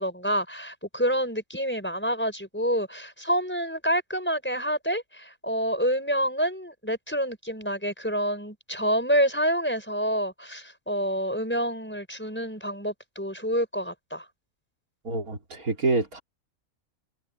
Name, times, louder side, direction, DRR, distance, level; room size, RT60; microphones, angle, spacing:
voice 1, 0.0-14.3, equal, 5° left, 5.6 m, -27 dB
voice 2, 15.0-16.2, right 3 dB, 80° right, 4.0 m, -27 dB
omnidirectional pair, 1.5 m